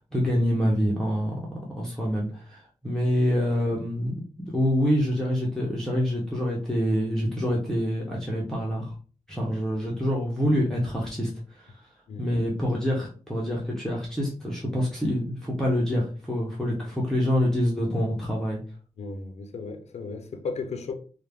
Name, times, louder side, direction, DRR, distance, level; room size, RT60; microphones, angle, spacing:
voice 1, 0.0-4.1 4.5-8.9 9.3-11.8 12.2-18.6, equal, 5° left, 0.5 m, -26 dB
voice 2, 19.0-20.9, left 4 dB, 65° left, 0.5 m, -35 dB
2.3 x 2.0 x 3.3 m
wide cardioid pair, 145°, 12 cm